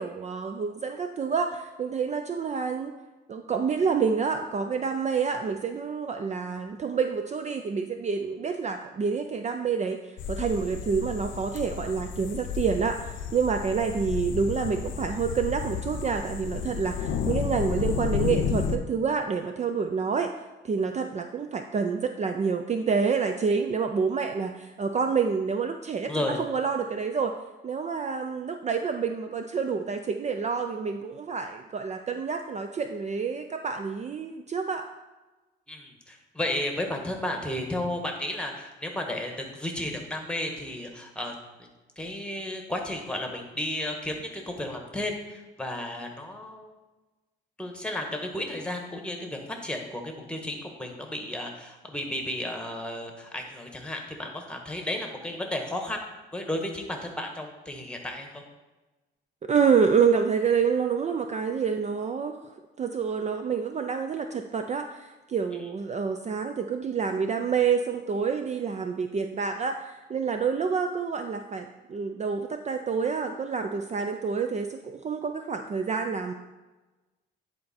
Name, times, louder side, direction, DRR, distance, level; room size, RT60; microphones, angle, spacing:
voice 1, 0.0-2.9 3.3-20.3 20.6-27.3 27.6-34.9 59.4-76.3, right 5 dB, 35° right, 6 dB, 0.5 m, -28 dB
sound 1, 10.2-18.8, left 7 dB, 80° left, 0.7 m, -32 dB
voice 2, 26.1-26.4 35.7-41.7 42.0-46.7 47.6-56.0 56.3-58.4, left 1 dB, 5° left, 2 dB, 1.4 m, -33 dB
10.0 x 4.2 x 4.3 m, 1.1 s
cardioid pair, 90°, 20 cm